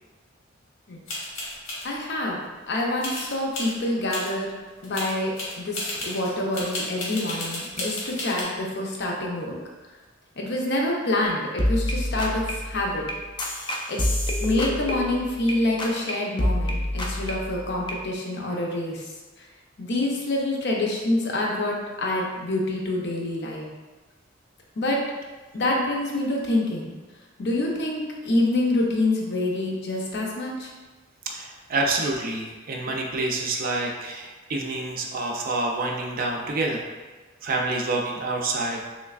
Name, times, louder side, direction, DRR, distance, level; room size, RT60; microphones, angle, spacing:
sound 1, 1.1-1.8 3.0-3.7 4.1-4.3 4.7-8.4, left 2 dB, 90° left, 1.2 m, -33 dB
voice 1, 1.8-2.4 2.7-4.5 4.8-9.6 10.4-13.1 13.9-14.0 14.4-19.5 19.8-23.7 24.8-25.0 25.5-26.9 27.4-30.7, left 1 dB, 60° left, -1 dB, 0.6 m, -26 dB
sound 2, 11.3-11.4 11.6-15.5 15.8-16.1 16.4-18.0, left 1 dB, 25° left, 0.4 m, -27 dB
voice 2, 31.3-36.8 37.4-38.9, right 2 dB, 45° right, 1 dB, 0.4 m, -27 dB
3.3 x 3.1 x 2.4 m, 1.3 s
head